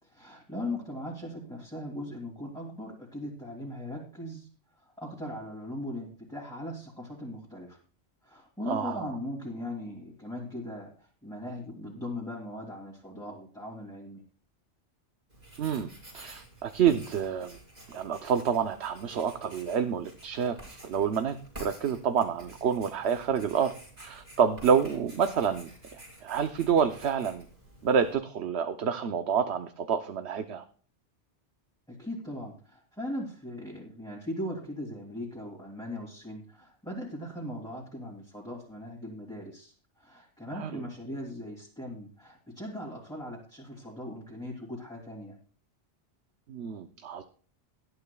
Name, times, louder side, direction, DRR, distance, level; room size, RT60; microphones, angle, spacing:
voice 1, 0.0-4.5 4.8-7.8 8.2-14.2 31.9-45.4, left 1 dB, 5° left, -4 dB, 2.6 m, -39 dB
voice 2, 8.7-9.0 15.6-15.9 16.1-17.6 17.9-27.4 27.8-30.6 40.6-40.8 46.5-47.2, right 7 dB, 65° right, 8 dB, 1.0 m, -28 dB
Writing, 15.3-28.1, right 1 dB, 35° right, 5.2 m, -50 dB
19.0 x 11.5 x 2.3 m, 0.42 s
omnidirectional pair, 1.2 m